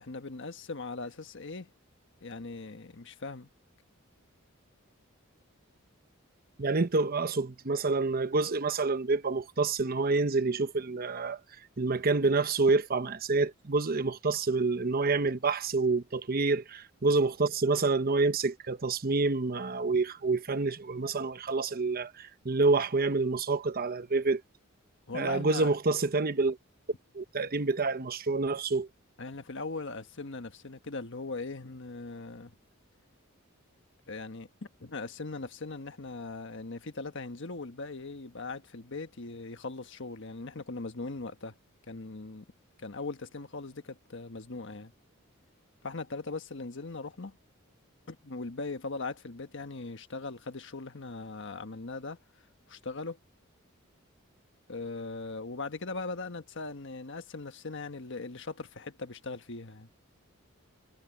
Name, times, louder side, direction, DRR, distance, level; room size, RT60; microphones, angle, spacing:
voice 1, 0.0-1.7 2.2-3.5 25.1-25.7 29.2-32.5 34.1-34.5 34.8-41.5 41.9-42.4 42.8-44.9 45.8-47.3 48.1-52.2 52.7-53.2 54.7-59.9, left 3 dB, 60° left, 1.4 m, -39 dB
voice 2, 6.6-11.4 11.8-24.4 25.1-26.6 27.1-28.9, right 3 dB, 45° right, 1.0 m, -28 dB
head